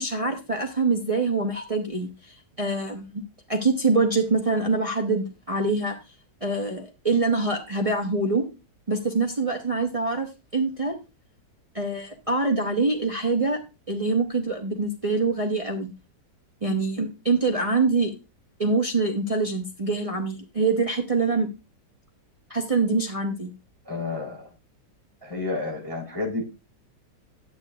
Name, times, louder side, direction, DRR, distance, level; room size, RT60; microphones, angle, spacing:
voice 1, 0.0-2.1 2.6-3.2 3.5-6.0 6.4-8.4 8.9-10.9 11.7-13.6 13.9-15.9 16.6-18.1 18.6-21.5 22.5-23.5, right 3 dB, 30° right, 2 dB, 0.7 m, -24 dB
voice 2, 23.9-24.5 25.2-26.5, left 3 dB, 15° right, -3 dB, 3.6 m, -30 dB
10.0 x 8.8 x 2.4 m, 0.28 s
omnidirectional pair, 1.8 m